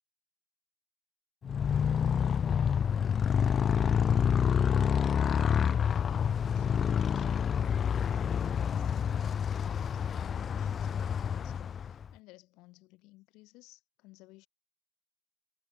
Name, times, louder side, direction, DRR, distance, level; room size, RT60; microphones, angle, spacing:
Motorcycle, 1.4-12.1, left 7 dB, 55° left, 1.1 m, -28 dB
voice 1, 9.5-14.5, left 22 dB, 80° left, 5.7 m, -58 dB
hypercardioid pair, 50°, 0 cm